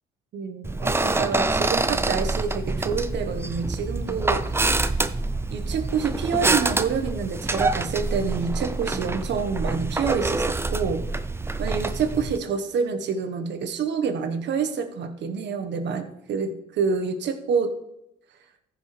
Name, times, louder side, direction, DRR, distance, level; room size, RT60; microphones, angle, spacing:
voice 1, 0.3-4.8 5.5-11.0 11.6-17.7, right 6 dB, 65° right, 7 dB, 1.4 m, -27 dB
sound 1, 0.6-12.4, right 2 dB, 10° right, 0.6 m, -26 dB
14.5 x 6.3 x 3.4 m, 0.85 s
supercardioid pair, 75°, 20 cm